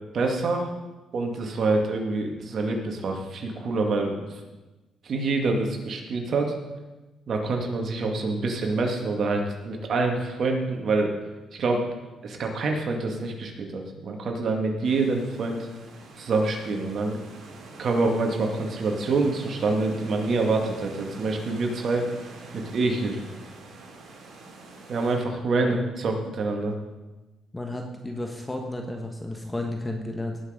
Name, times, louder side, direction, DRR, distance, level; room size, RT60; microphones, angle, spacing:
voice 1, 0.1-0.7 1.1-4.3 5.0-6.5 7.3-11.1 11.6-11.9 12.2-15.7 16.2-17.2 17.8-22.1 22.5-23.2 24.9-26.7, right 3 dB, 55° right, 2 dB, 2.3 m, -26 dB
sound 1, 14.8-25.2, right 2 dB, 70° right, 3.2 m, -45 dB
voice 2, 27.5-30.4, left 1 dB, 10° left, 3 dB, 1.5 m, -32 dB
18.0 x 6.4 x 5.2 m, 1.1 s
cardioid pair, 90°, 0 cm